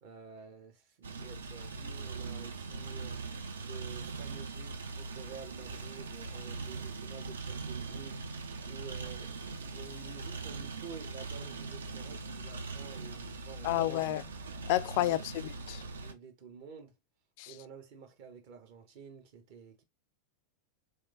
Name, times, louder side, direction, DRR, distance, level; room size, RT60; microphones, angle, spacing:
voice 1, 0.0-3.2 3.6-14.0 15.0-15.2 15.9-17.0 17.5-19.8, right 6 dB, 50° right, 1.0 m, -50 dB
sound 1, 1.0-16.1, right 4 dB, 70° right, 0.6 m, -41 dB
voice 2, 13.6-14.2 14.7-15.8 17.4-17.5, left 15 dB, 45° left, 0.3 m, -30 dB
3.5 x 3.2 x 2.6 m
figure-of-eight pair, 90°, 0 cm